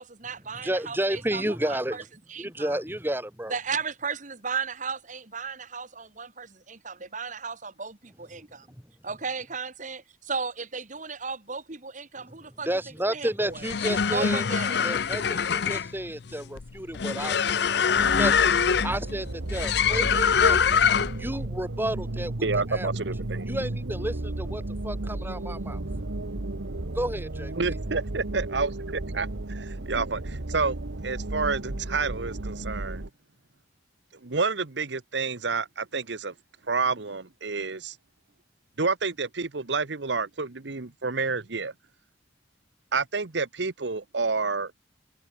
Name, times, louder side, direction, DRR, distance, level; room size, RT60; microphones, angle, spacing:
voice 1, 0.0-1.4 1.7-2.0 2.3-2.8 3.5-8.7 9.0-12.7 13.1-13.6 14.1-15.0, right 5 dB, 40° right, 2.3 m, -35 dB
voice 2, 0.6-2.0 2.4-3.6 12.7-14.4 14.8-17.6 18.1-22.9 23.5-25.8 26.9-27.8, right 1 dB, 10° right, 4.2 m, -32 dB
sound 1, 13.5-21.3, left 7 dB, 60° left, 0.6 m, -24 dB
sound 2, 17.9-33.1, right 2 dB, 90° right, 1.4 m, -34 dB
voice 3, 22.4-23.5 27.5-30.8 31.0-33.0 34.2-36.3 36.7-38.0 38.8-41.7 42.9-44.7, right 4 dB, 70° right, 1.1 m, -29 dB
head